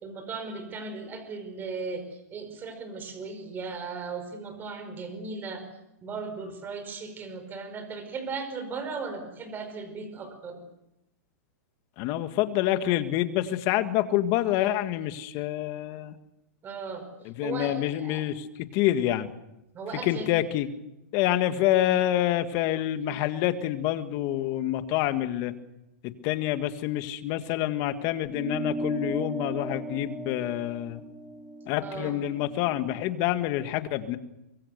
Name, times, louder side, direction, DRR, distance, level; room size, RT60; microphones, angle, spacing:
voice 1, 0.0-5.6 6.0-10.6 16.6-17.1 17.4-18.2 19.7-20.3 31.8-32.1, right 4 dB, 20° right, 8 dB, 5.3 m, -37 dB
voice 2, 12.0-16.2 17.3-19.3 20.0-20.7 21.1-25.5 26.0-31.0 31.7-34.2, left 13 dB, 40° left, 10 dB, 1.8 m, -27 dB
sound 1, 28.3-33.1, right 2 dB, 5° left, 2.8 m, -37 dB
23.5 x 23.0 x 6.7 m, 0.89 s
hypercardioid pair, 145°, 9 cm